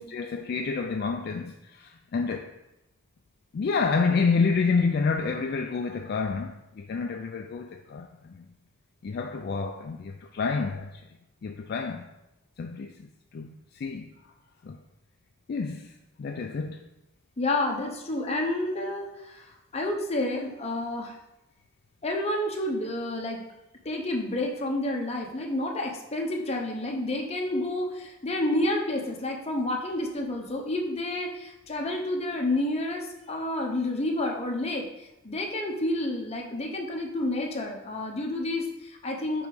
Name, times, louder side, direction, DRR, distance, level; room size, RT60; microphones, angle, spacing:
voice 1, 0.1-2.5 3.5-8.4 9.0-10.9 11.4-12.1 12.6-14.1 14.6-14.8 15.5-15.9 16.2-16.8, left 4 dB, 50° left, 0.3 m, -29 dB
voice 2, 17.4-19.5 19.7-21.2 22.0-23.4 23.8-39.5, left 1 dB, 30° left, 0.8 m, -29 dB
5.4 x 3.9 x 4.7 m
head